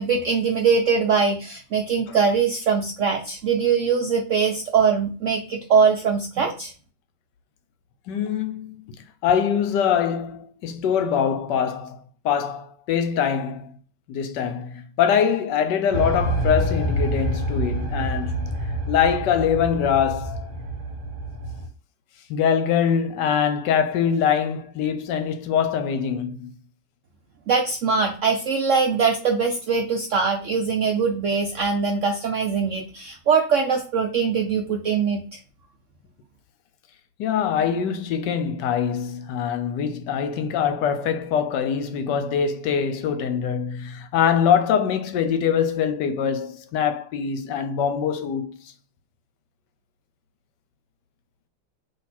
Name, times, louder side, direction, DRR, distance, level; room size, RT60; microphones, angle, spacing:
voice 1, 0.0-6.7 27.5-35.2, right 5 dB, 75° right, 0.7 m, -22 dB
voice 2, 8.1-9.0 9.2-12.0 12.2-13.7 14.1-18.5 18.9-20.5 22.3-26.5 37.2-48.6, left 8 dB, 80° left, 1.2 m, -23 dB
sound 1, 15.9-21.7, right 1 dB, 50° right, 1.2 m, -27 dB
4.1 x 3.0 x 4.2 m
omnidirectional pair, 1.9 m